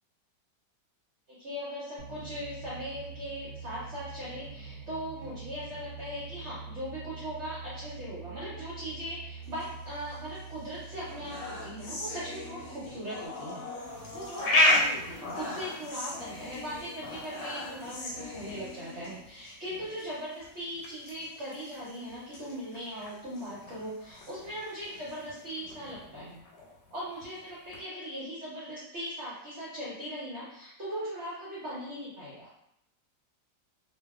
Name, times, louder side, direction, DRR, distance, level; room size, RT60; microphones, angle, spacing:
voice 1, 1.3-13.7 14.1-26.4 26.9-32.5, equal, 55° right, -8 dB, 0.8 m, -39 dB
sound 1, 2.0-13.3, right 5 dB, 80° right, 1.2 m, -45 dB
sound 2, 9.4-10.4 10.8-19.6 19.9-20.1 20.3-20.5 21.0-23.5 24.0-25.4, left 2 dB, 65° left, 0.8 m, -44 dB
sound 3, 13.7-27.8, left 1 dB, 85° left, 1.3 m, -34 dB
2.7 x 2.3 x 2.3 m, 0.79 s
omnidirectional pair, 1.9 m